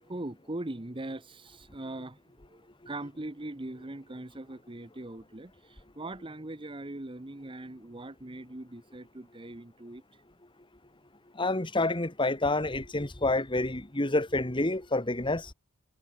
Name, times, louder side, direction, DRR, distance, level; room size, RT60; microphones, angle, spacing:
voice 1, 0.0-2.2 2.5-10.0, right 2 dB, 25° right, 1.0 m, -41 dB
voice 2, 11.4-15.5, left 2 dB, 20° left, 2.0 m, -28 dB
head